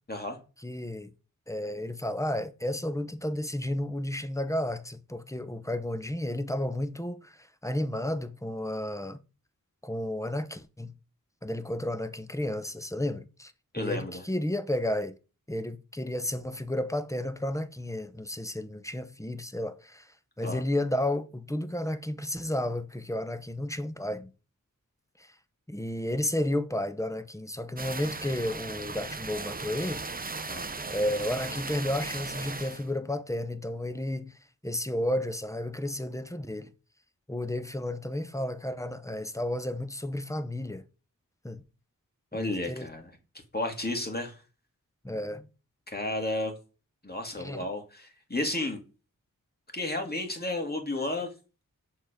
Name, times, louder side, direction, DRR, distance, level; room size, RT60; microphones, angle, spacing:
voice 1, 0.6-1.1 1.5-9.2 9.8-10.9 11.4-15.1 15.5-20.1 20.4-24.3 25.2-25.3 25.7-30.0 30.9-34.4 34.6-36.7 37.3-40.8 41.4-41.6 42.3-42.9 45.0-45.5 47.4-47.7, left 1 dB, 10° left, 0.8 m, -32 dB
voice 2, 13.7-14.2 20.4-20.6 30.5-30.7 42.3-43.2 43.5-44.4 45.9-46.5 47.0-48.8 49.7-51.3, left 2 dB, 30° left, 2.0 m, -32 dB
sound 1, 27.8-32.9, right 3 dB, 25° right, 0.6 m, -37 dB
6.8 x 3.8 x 5.0 m
wide cardioid pair, 50°, 33 cm